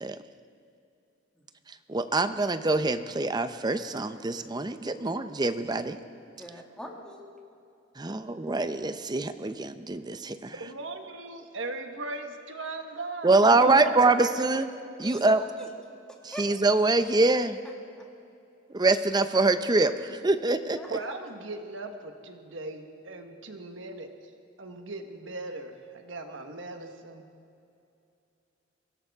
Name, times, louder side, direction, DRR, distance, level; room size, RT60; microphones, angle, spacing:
voice 1, 1.9-6.0 8.0-10.5 13.2-14.7 15.0-15.4 16.2-17.6 18.7-20.8, right 3 dB, 20° right, 10 dB, 0.6 m, -24 dB
voice 2, 6.4-7.3 15.0-15.7 16.3-16.4 20.7-21.1, left 1 dB, 5° left, -1 dB, 2.0 m, -41 dB
voice 3, 10.6-14.3 20.9-24.1 24.6-27.2, right 3 dB, 75° right, 5 dB, 1.3 m, -38 dB
24.0 x 17.0 x 3.6 m, 2.6 s
head